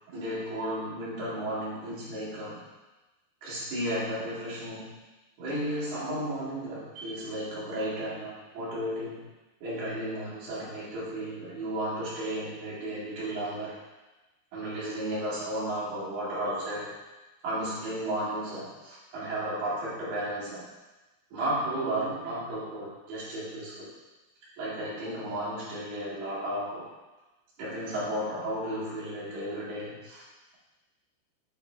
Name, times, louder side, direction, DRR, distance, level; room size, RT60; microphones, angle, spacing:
voice 1, 0.1-2.6 3.4-4.9 5.4-9.2 9.6-13.7 14.5-16.9 17.4-20.6 21.3-23.9 24.6-26.8 27.6-30.2, right 1 dB, 60° right, -10 dB, 4.0 m, -33 dB
8.9 x 4.4 x 3.3 m, 1.1 s
omnidirectional pair, 5.3 m